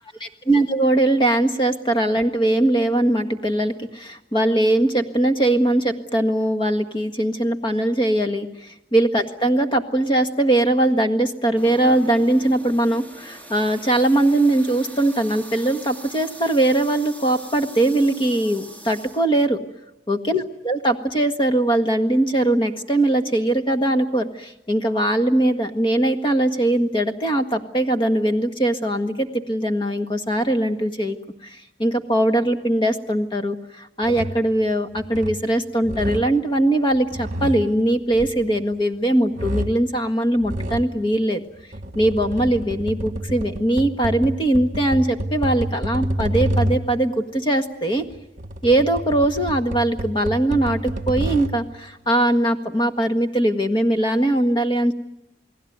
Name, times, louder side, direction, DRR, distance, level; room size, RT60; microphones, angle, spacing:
voice 1, 0.5-8.5 8.9-19.6 20.1-31.2 31.8-41.4 41.9-48.0 48.6-54.9, right 1 dB, 30° left, 7 dB, 1.7 m, -21 dB
sound 1, 11.6-19.3, right 1 dB, 10° left, 3.0 m, -41 dB
sound 2, 34.0-34.5 34.9-35.5 35.8-36.4 36.9-39.0 39.3-39.9 40.4-41.0 41.6-47.0 48.0-51.7, right 1 dB, 45° right, 1.8 m, -29 dB
29.0 x 19.5 x 9.5 m, 0.88 s
head